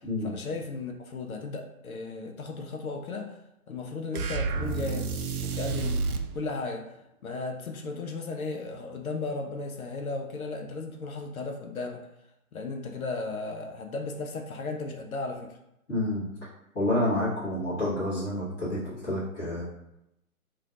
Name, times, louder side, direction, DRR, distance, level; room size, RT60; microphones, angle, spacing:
voice 1, 0.2-3.3 3.7-7.0 7.2-12.0 12.5-15.6, left 3 dB, 70° left, 3 dB, 0.6 m, -35 dB
sound 1, 4.1-6.3, right 4 dB, 75° right, 0.5 m, -30 dB
voice 2, 15.9-16.3 16.7-19.6, left 1 dB, 10° left, -12 dB, 0.8 m, -29 dB
2.4 x 2.2 x 3.8 m, 0.85 s
figure-of-eight pair, 140°, 45 cm